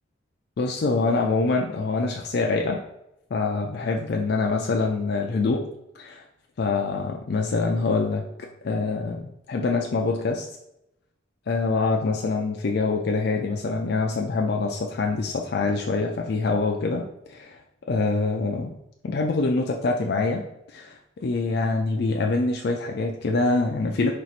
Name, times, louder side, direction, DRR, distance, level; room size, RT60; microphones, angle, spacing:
voice 1, 0.6-2.8 3.3-5.7 6.0-6.2 6.6-8.3 8.6-9.2 9.5-10.5 11.5-17.6 17.9-18.8 19.0-24.1, left 3 dB, 60° left, 2 dB, 0.4 m, -25 dB
4.4 x 2.5 x 4.1 m, 0.83 s
head